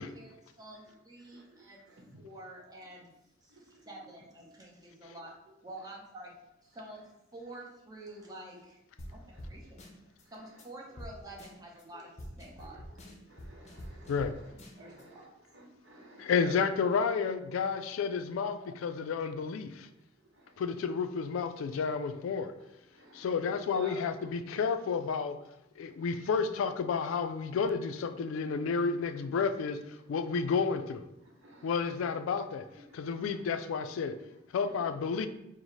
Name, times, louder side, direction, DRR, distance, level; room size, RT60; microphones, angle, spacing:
voice 1, 0.0-1.8 2.2-3.1 3.4-5.3 5.6-6.3 6.6-8.8 9.1-9.8 10.3-12.1 12.4-12.8 14.8-15.3, right 1 dB, 20° right, -3 dB, 0.8 m, -48 dB
voice 2, 0.8-2.2 3.5-4.1 5.6-5.9 8.1-8.3 9.0-10.6 10.9-11.0 12.4-16.9 19.9-20.9 21.5-21.9 22.2-22.3 22.5-24.0 25.8-26.2 28.2-28.6 29.2-30.6 31.1-32.1 32.7-33.5 33.8-34.9, right 1 dB, 65° right, 0 dB, 0.9 m, -56 dB
sound 1, 9.0-9.1 9.4-9.5 9.8-10.2 10.6-10.7 11.0-11.1 11.4-11.8 12.2-14.3 14.6-15.0, equal, 35° left, 0.6 m, -45 dB
voice 3, 16.2-19.9 20.6-22.5 23.1-25.4 25.8-29.8 30.1-31.0 31.6-32.7 32.9-34.1 34.5-35.3, left 5 dB, 85° left, 10 dB, 0.3 m, -31 dB
4.6 x 2.1 x 4.0 m, 0.88 s
head